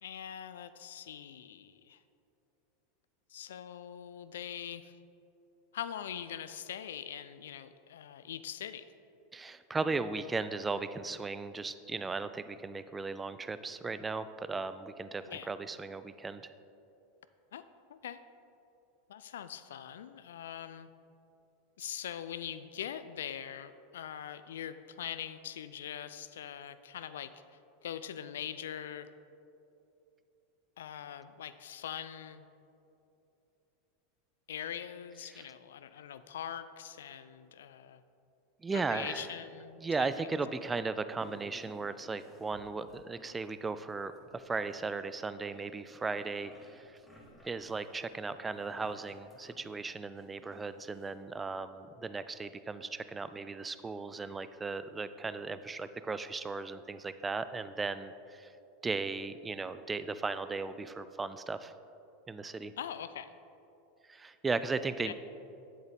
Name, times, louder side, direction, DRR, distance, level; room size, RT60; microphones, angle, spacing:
voice 1, 0.0-2.0 3.3-5.0 5.7-8.9 15.3-15.5 17.5-17.6 17.9-18.2 19.1-20.9 21.8-27.3 27.8-29.1 30.8-32.5 34.5-38.0 38.7-40.3 62.8-63.3 65.1-65.2, left 9 dB, 65° left, 12 dB, 0.3 m, -42 dB
voice 2, 9.3-16.5 35.3-35.5 38.6-39.3 39.8-46.9 47.4-58.5 58.8-61.7 62.3-62.7 64.1-65.1, right 4 dB, 15° right, 13 dB, 0.3 m, -36 dB
sound 1, 41.2-43.5 43.8-45.1 45.5-51.1, equal, 5° left, 1.6 m, -59 dB
9.3 x 7.8 x 3.4 m, 2.8 s
figure-of-eight pair, 85°, 0 cm